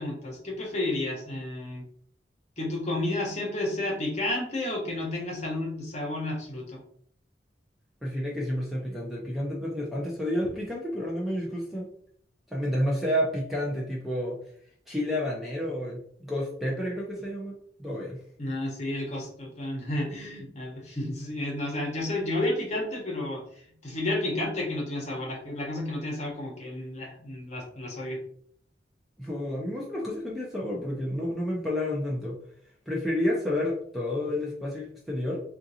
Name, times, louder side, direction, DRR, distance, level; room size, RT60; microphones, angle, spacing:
voice 1, 0.0-1.8 2.6-6.8 18.4-23.4 23.8-28.2, left 1 dB, 40° left, -1 dB, 1.0 m, -31 dB
voice 2, 8.0-11.9 12.5-14.4 14.9-17.5 17.8-18.2 29.2-32.4 32.9-35.4, left 1 dB, ahead, -4 dB, 0.5 m, -30 dB
3.7 x 2.5 x 2.7 m, 0.62 s
head